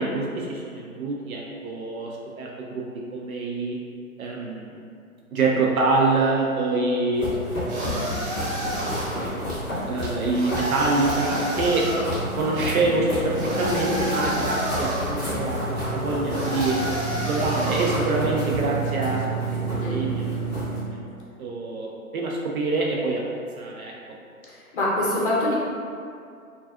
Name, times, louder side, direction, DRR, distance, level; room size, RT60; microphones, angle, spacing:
voice 1, 0.0-2.8 3.1-3.8 4.2-4.8 5.3-7.3 7.7-8.6 9.9-11.9 12.4-16.8 17.1-19.2 19.7-20.3 20.9-21.1 21.4-23.2 23.6-23.9, right 3 dB, 70° right, -3 dB, 0.5 m, -25 dB
sound 1, 7.1-20.8, right 1 dB, ahead, 0.7 m, -29 dB
sound 2, 7.7-9.3 10.3-12.1 13.4-15.2 16.3-18.1, right 1 dB, 50° right, 0.9 m, -30 dB
voice 2, 24.7-25.5, left 1 dB, 40° left, -5 dB, 0.6 m, -23 dB
2.4 x 2.3 x 2.3 m, 2.4 s
figure-of-eight pair, 135°, 44 cm